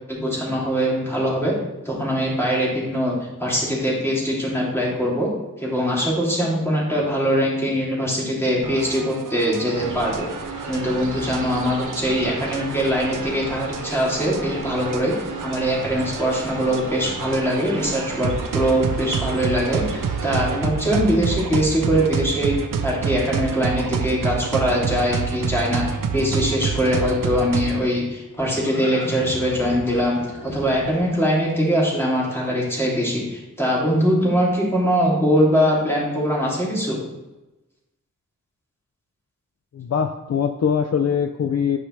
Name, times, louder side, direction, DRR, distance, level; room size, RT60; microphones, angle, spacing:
voice 1, 0.1-1.5 1.8-5.3 5.6-10.3 10.6-15.1 15.4-22.6 22.8-37.0, equal, 10° left, -5 dB, 2.7 m, -22 dB
sound 1, 8.6-27.8, right 6 dB, 90° right, 0.6 m, -29 dB
sound 2, 9.7-20.6, right 2 dB, 70° right, 1.4 m, -36 dB
Livestock farm animals working animals, 28.1-32.8, left 1 dB, 80° left, 1.5 m, -38 dB
voice 2, 39.7-41.8, left 7 dB, 55° left, 7 dB, 0.5 m, -22 dB
9.9 x 5.4 x 3.2 m, 1.0 s
wide cardioid pair, 90°, 31 cm